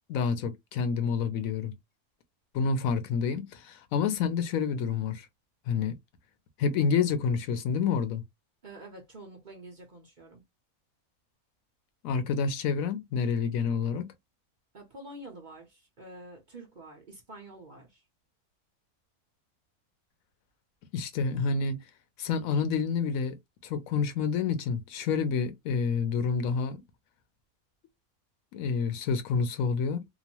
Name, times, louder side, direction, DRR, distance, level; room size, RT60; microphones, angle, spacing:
voice 1, 0.1-1.7 2.5-5.3 5.7-6.0 6.6-8.2 12.0-14.1 20.9-21.8 22.2-23.4 23.6-26.8 28.5-30.0, left 5 dB, 70° left, 1.0 m, -28 dB
voice 2, 8.6-10.4 14.7-18.0, right 2 dB, 45° right, 0.6 m, -47 dB
3.0 x 2.0 x 2.8 m
omnidirectional pair, 1.6 m